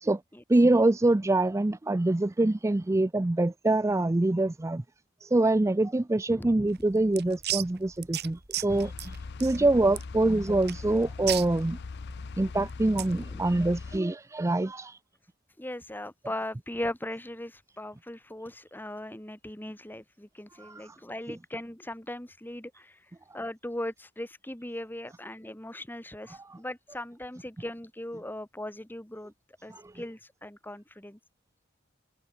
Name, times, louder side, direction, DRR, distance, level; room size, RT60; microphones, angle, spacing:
voice 1, 0.5-4.8 5.2-9.2 9.4-11.8 12.4-15.0 20.6-21.0 26.5-26.6 29.7-29.9, right 2 dB, 15° right, 0.4 m, -25 dB
voice 2, 6.3-6.7 13.0-13.6 15.6-23.0 23.3-29.3 29.6-31.2, left 1 dB, 10° left, 1.8 m, -39 dB
sound 1, 6.7-13.2, right 13 dB, 55° right, 3.1 m, -37 dB
sound 2, 8.7-14.0, left 4 dB, 55° left, 0.5 m, -40 dB
head